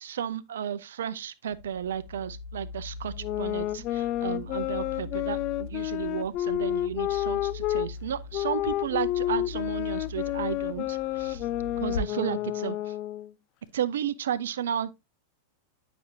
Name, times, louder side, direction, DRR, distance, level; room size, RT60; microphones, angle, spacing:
voice 1, 0.0-11.5 11.8-13.0 13.7-14.9, right 9 dB, 60° right, 0.5 m, -33 dB
sound 1, 1.5-12.0, left 3 dB, 65° left, 4.0 m, -41 dB
sound 2, 2.7-12.6, right 4 dB, 90° left, 2.8 m, -56 dB
sound 3, 3.2-7.9 8.3-13.3, left 14 dB, 40° left, 0.3 m, -30 dB
9.3 x 5.9 x 2.6 m
figure-of-eight pair, 90°, 0 cm